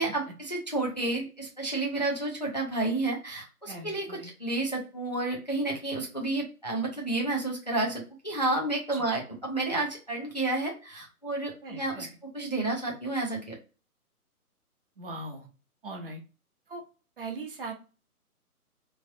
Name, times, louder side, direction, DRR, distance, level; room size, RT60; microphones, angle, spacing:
voice 1, 0.0-12.1 12.3-13.6, right 2 dB, 30° left, -1 dB, 0.5 m, -30 dB
voice 2, 3.7-4.3 8.9-9.1 11.6-12.1 15.0-15.5 15.8-16.2 16.7-16.8 17.2-17.7, right 2 dB, 35° right, 3 dB, 0.8 m, -40 dB
3.1 x 2.5 x 2.6 m, 0.34 s
figure-of-eight pair, 145°, 46 cm